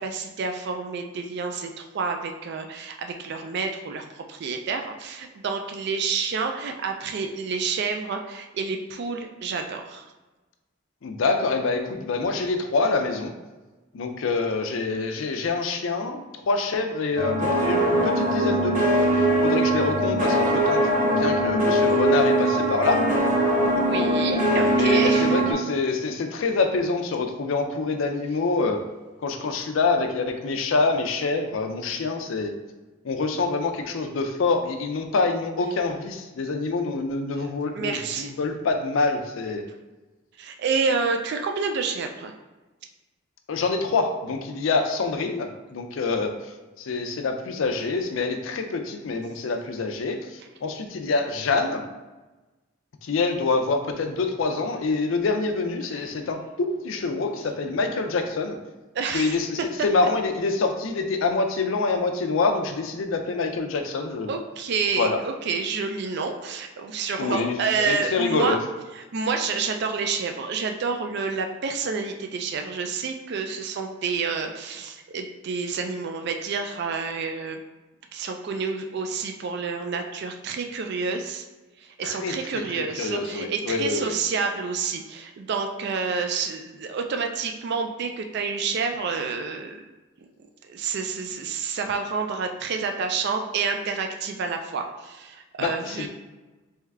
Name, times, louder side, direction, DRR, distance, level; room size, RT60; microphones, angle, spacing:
voice 1, 0.0-10.0 23.7-25.4 37.4-37.5 37.8-38.3 40.4-42.3 55.9-56.1 58.9-59.4 64.3-68.5 68.9-77.6 78.1-81.4 81.8-89.8 90.7-96.1, right 5 dB, 55° right, 5 dB, 0.4 m, -29 dB
voice 2, 11.0-13.3 13.9-23.0 24.7-28.8 29.2-32.5 33.0-39.6 43.5-46.3 46.8-51.8 53.0-58.6 59.1-64.3 65.0-65.2 67.2-68.6 82.0-84.2 95.6-96.1, left 3 dB, 75° left, 5 dB, 0.4 m, -26 dB
sound 1, 17.2-25.5, right 1 dB, 40° right, 0.8 m, -21 dB
3.5 x 3.1 x 3.4 m, 1.2 s
head